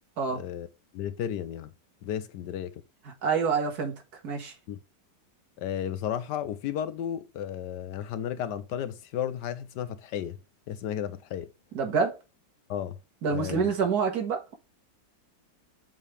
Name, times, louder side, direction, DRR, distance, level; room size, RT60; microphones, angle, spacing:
voice 1, 0.3-0.7 0.9-1.7 2.0-2.8 4.7-4.8 5.6-10.4 10.7-11.5 12.7-13.0 13.3-13.7, left 10 dB, 75° left, 1.2 m, -33 dB
voice 2, 3.2-4.0 4.2-4.5 11.7-12.2 13.2-14.5, right 5 dB, 60° right, 2.1 m, -27 dB
7.4 x 3.9 x 3.3 m
omnidirectional pair, 2.0 m